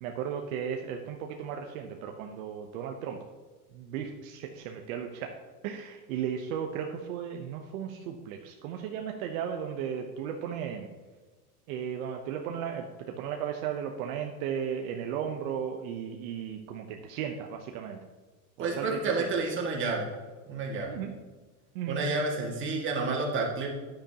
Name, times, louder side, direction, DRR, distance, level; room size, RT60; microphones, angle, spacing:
voice 1, 0.0-3.2 3.7-5.3 5.6-10.9 11.7-18.0 18.6-18.9 19.2-19.3 20.9-21.1 21.7-22.0, right 8 dB, 65° right, 3 dB, 0.9 m, -35 dB
voice 2, 18.6-20.1 20.5-20.9 21.9-23.7, right 3 dB, 25° right, -2 dB, 2.0 m, -30 dB
10.0 x 8.7 x 2.9 m, 1.3 s
supercardioid pair, 135°, 45 cm